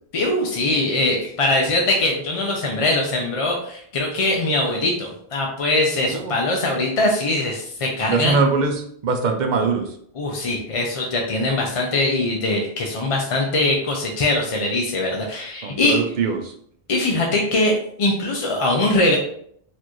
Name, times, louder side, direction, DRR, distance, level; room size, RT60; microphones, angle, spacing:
voice 1, 0.1-8.4 10.2-16.0 16.9-17.7 18.0-19.2, left 2 dB, 45° left, 0 dB, 0.5 m, -22 dB
voice 2, 6.0-6.3 8.0-9.9 15.6-16.5, right 4 dB, 55° right, 5 dB, 0.6 m, -22 dB
4.1 x 2.5 x 3.0 m, 0.65 s
omnidirectional pair, 1.1 m